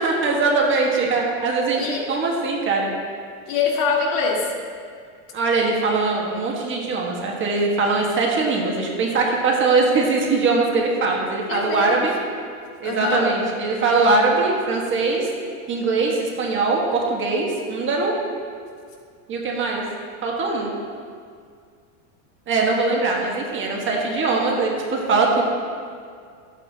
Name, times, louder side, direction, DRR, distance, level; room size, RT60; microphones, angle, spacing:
voice 1, 0.0-1.8 2.1-2.9 5.3-12.1 12.8-15.3 15.7-18.1 19.3-19.8 20.2-20.7 22.5-25.4, right 3 dB, 30° right, -1 dB, 1.5 m, -21 dB
voice 2, 3.5-4.5 11.5-12.0 12.8-13.3, left 5 dB, 80° left, -1 dB, 1.8 m, -23 dB
12.0 x 8.6 x 2.8 m, 2.2 s
supercardioid pair, 135°, 39 cm